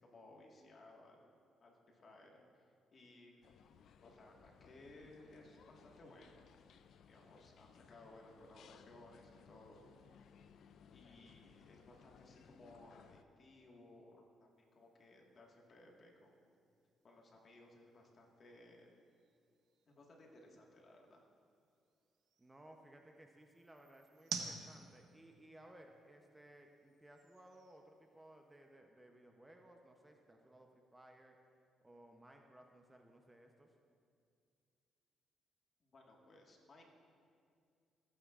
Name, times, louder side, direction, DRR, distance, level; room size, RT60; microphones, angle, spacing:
voice 1, 0.0-2.6 2.9-3.4 4.0-6.6 7.1-9.8 10.9-16.5 17.0-18.9 19.9-21.2 35.8-36.8, left 2 dB, 45° left, 0 dB, 1.7 m, -60 dB
sound 1, 3.4-13.2, left 7 dB, 65° left, 0.3 m, -63 dB
sound 2, 14.5-28.7, right 6 dB, 70° right, 0.9 m, -54 dB
voice 2, 22.4-31.4 31.8-33.7, right 1 dB, 15° right, 3 dB, 0.7 m, -60 dB
16.5 x 8.8 x 2.5 m, 2.3 s
cardioid pair, 90°, 0 cm